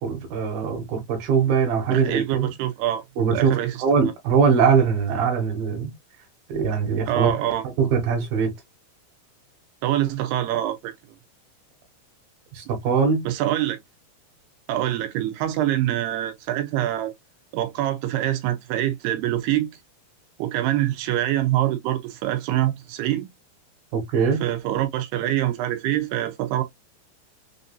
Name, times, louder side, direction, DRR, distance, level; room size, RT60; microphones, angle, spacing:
voice 1, 0.0-2.5 3.2-3.5 3.8-5.9 6.5-7.3 7.8-8.5 12.5-13.2 23.9-24.4, right 6 dB, 70° right, 3.0 m, -21 dB
voice 2, 1.9-3.0 3.3-3.8 7.1-7.6 9.8-10.9 13.2-13.8 14.7-17.1 17.5-19.7 20.4-23.3 24.4-26.6, right 13 dB, 85° right, 2.8 m, -25 dB
6.2 x 2.6 x 2.2 m
omnidirectional pair, 4.6 m